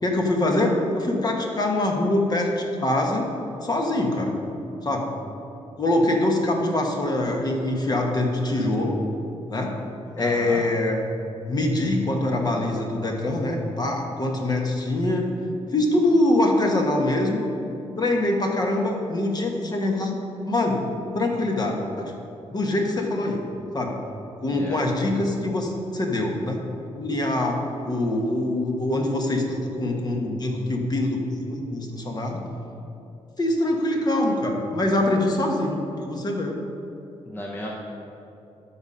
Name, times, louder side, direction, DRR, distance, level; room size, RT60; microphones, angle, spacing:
voice 1, 0.0-3.3 3.6-4.3 4.8-5.1 5.8-9.0 9.5-9.7 10.2-11.0 11.5-15.3 15.7-17.5 18.0-20.2 20.5-20.8 21.1-22.1 22.5-23.4 23.7-24.0 24.4-26.6 26.9-27.6 27.8-32.4 33.4-36.6, left 1 dB, 35° left, 1 dB, 1.3 m, -24 dB
voice 2, 10.2-10.6 24.5-24.8 37.3-37.8, left 1 dB, 20° left, -2 dB, 0.9 m, -32 dB
12.5 x 4.2 x 5.4 m, 2.7 s
cardioid pair, 100°, 11 cm